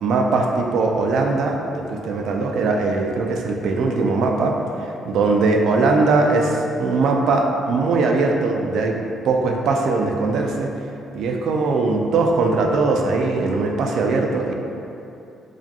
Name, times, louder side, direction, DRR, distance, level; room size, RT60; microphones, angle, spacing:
voice 1, 0.0-9.0 9.2-10.7 11.1-14.5, right 3 dB, 65° right, 2 dB, 0.3 m, -20 dB
4.8 x 2.2 x 2.8 m, 2.7 s
cardioid pair, 160°, 0 cm